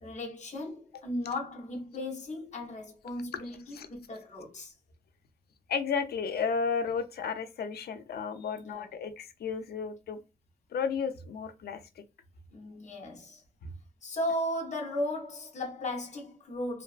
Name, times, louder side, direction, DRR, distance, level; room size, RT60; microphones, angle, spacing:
voice 1, 0.0-4.7 8.5-8.9 12.5-13.4 14.0-16.8, left 1 dB, 45° left, 0.7 m, -36 dB
voice 2, 5.7-10.2 10.7-12.0 13.6-13.7, left 5 dB, 90° left, 0.4 m, -33 dB
2.6 x 2.2 x 2.3 m
wide cardioid pair, 150°, 16 cm